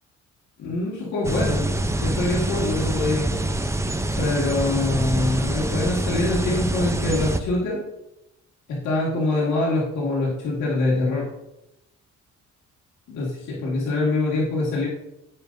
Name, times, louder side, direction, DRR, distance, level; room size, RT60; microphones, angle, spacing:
voice 1, 0.6-1.7 2.0-3.3 4.2-7.8 8.7-11.3 13.1-14.9, left 2 dB, 75° left, -6 dB, 2.2 m, -24 dB
sound 1, 1.2-7.4, right 1 dB, 10° right, 0.7 m, -25 dB
15.5 x 5.4 x 2.7 m, 0.91 s
cardioid pair, 90°, 30 cm